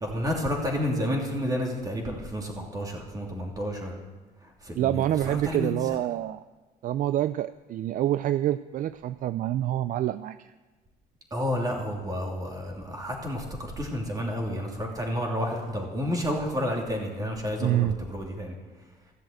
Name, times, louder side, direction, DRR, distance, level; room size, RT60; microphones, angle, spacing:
voice 1, 0.0-3.9 4.6-6.0 11.3-18.5, equal, 20° right, 1 dB, 3.0 m, -30 dB
voice 2, 4.8-6.4 6.8-10.5 17.6-18.0, right 13 dB, 55° right, 14 dB, 0.4 m, -27 dB
14.0 x 7.6 x 8.0 m, 1.2 s
cardioid pair, 110°, 17 cm